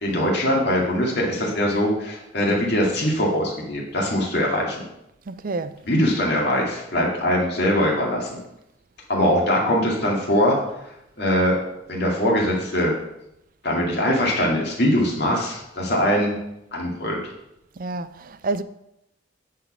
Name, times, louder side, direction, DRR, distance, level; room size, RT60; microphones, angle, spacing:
voice 1, 0.0-4.8 5.9-8.4 9.1-10.6 11.2-11.6 11.9-12.9 13.6-16.4 16.7-17.2, equal, 55° left, 2.2 m, -22 dB
voice 2, 5.3-5.7 17.8-18.6, right 3 dB, 45° right, 0.4 m, -28 dB
9.0 x 4.3 x 6.1 m
head